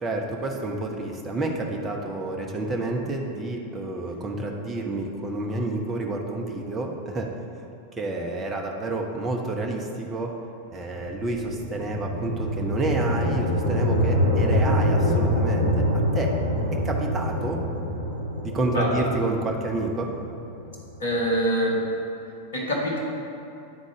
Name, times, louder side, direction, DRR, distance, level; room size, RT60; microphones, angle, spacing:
voice 1, 0.0-7.3 7.9-10.3 10.7-15.9 16.1-16.3 16.7-17.6 18.4-20.1, right 2 dB, 20° right, 0 dB, 0.9 m, -29 dB
sound 1, 10.9-21.1, left 1 dB, 90° left, 1.3 m, -25 dB
voice 2, 21.0-21.8 22.5-23.0, equal, 65° left, -3 dB, 1.7 m, -24 dB
9.4 x 4.1 x 4.8 m, 2.7 s
figure-of-eight pair, 90°, 0 cm